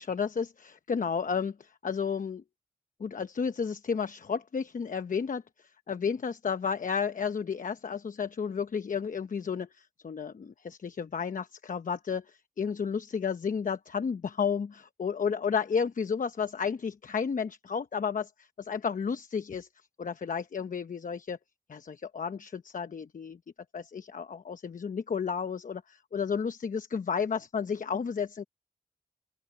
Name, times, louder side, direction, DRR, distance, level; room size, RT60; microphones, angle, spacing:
voice 1, 0.0-2.4 3.0-19.7 20.0-21.4 21.7-23.4 23.7-28.4, left 6 dB, 60° left, 1.0 m, -32 dB
open air
cardioid pair, 55°, 15 cm